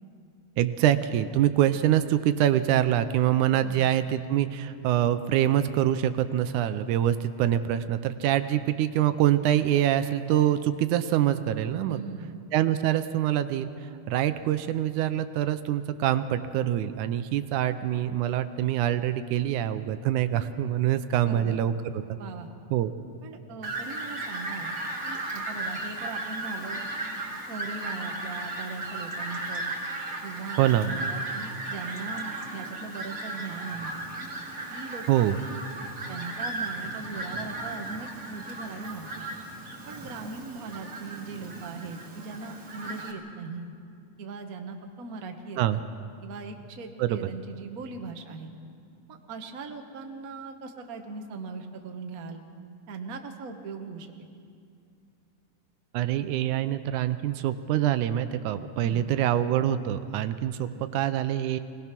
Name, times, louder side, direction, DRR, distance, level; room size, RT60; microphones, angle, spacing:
voice 1, 0.6-12.0 12.5-13.7 14.1-22.2 22.7-22.9 30.6-30.9 35.1-35.4 45.6-45.8 47.0-47.3 55.9-61.6, right 11 dB, 80° right, 11 dB, 2.1 m, -25 dB
voice 2, 11.9-12.4 21.2-21.6 22.2-22.5 23.2-24.8 25.0-26.8 27.5-29.7 30.2-33.9 34.7-35.3 36.1-39.3 39.9-43.7 44.2-45.8 46.2-48.5 49.1-52.4 52.9-54.3 58.8-59.1, right 4 dB, 45° right, 4 dB, 1.1 m, -39 dB
Fowl, 23.6-43.1, right 2 dB, 30° right, 2.4 m, -36 dB
25.0 x 19.0 x 6.0 m, 2.4 s
omnidirectional pair, 3.6 m